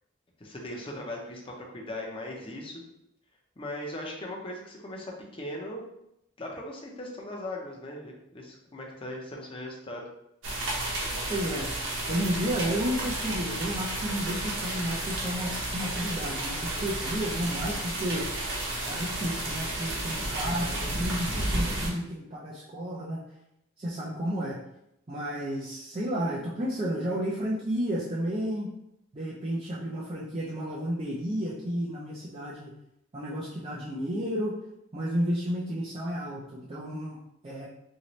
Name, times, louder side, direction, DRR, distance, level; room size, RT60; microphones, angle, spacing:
voice 1, 0.4-2.8 3.6-5.8 6.4-10.1, left 1 dB, 30° left, -1 dB, 0.6 m, -39 dB
sound 1, 10.4-21.9, right 1 dB, 90° right, 0.9 m, -32 dB
voice 2, 11.3-11.7 12.1-18.3 18.9-23.2 23.8-24.6 25.1-28.7 29.1-32.7 33.1-34.6 34.9-37.7, equal, 30° right, -7 dB, 0.5 m, -32 dB
3.0 x 2.7 x 3.0 m, 0.81 s
head